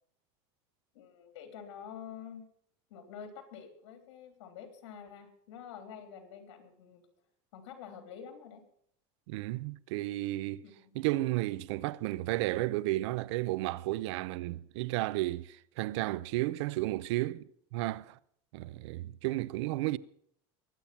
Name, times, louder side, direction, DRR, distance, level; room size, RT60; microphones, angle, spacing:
voice 1, 0.9-2.5 2.9-7.0 7.5-8.6 10.6-10.9, left 7 dB, 85° left, 3.4 m, -48 dB
voice 2, 9.3-10.6 10.9-18.2 18.5-20.0, right 17 dB, 75° right, 0.7 m, -33 dB
22.0 x 8.8 x 5.8 m
supercardioid pair, 135°, 15 cm